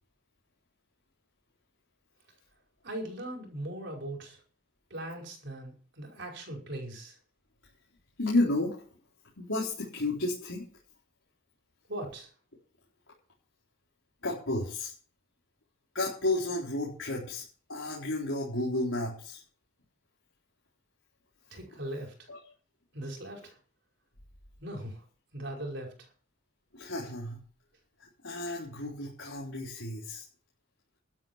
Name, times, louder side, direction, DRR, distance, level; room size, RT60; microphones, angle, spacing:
voice 1, 2.8-4.4 4.9-7.2 11.9-12.3 21.5-22.3 22.9-23.6 24.6-25.0 25.3-26.1, right 1 dB, 60° right, 1 dB, 5.4 m, -39 dB
voice 2, 8.2-8.7 9.4-10.6 14.2-14.9 15.9-17.4 17.7-19.4 22.3-22.5 26.7-27.4 28.2-30.2, left 2 dB, 75° left, -4 dB, 3.9 m, -32 dB
12.5 x 9.2 x 7.3 m, 0.42 s
head